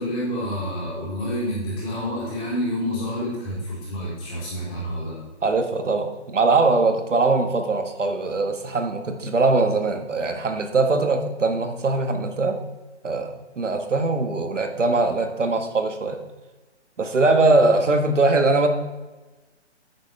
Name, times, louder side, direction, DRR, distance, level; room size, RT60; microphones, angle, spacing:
voice 1, 0.0-5.2, equal, 15° left, -7 dB, 3.6 m, -28 dB
voice 2, 5.4-12.6 13.0-16.2 17.0-18.7, right 3 dB, 90° right, 6 dB, 1.7 m, -21 dB
10.5 x 9.3 x 3.4 m, 1.2 s
hypercardioid pair, 160°, 36 cm